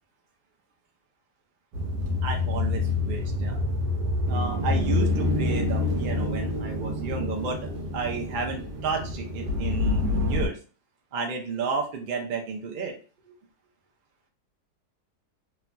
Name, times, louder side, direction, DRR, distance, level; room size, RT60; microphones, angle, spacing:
sound 1, 1.7-10.5, left 2 dB, 90° right, 1.4 m, -27 dB
voice 1, 2.2-3.6 3.9-10.6 11.1-12.9 13.3-13.4, right 4 dB, 70° right, 1 dB, 0.4 m, -32 dB
3.2 x 2.5 x 2.2 m, 0.37 s
omnidirectional pair, 1.8 m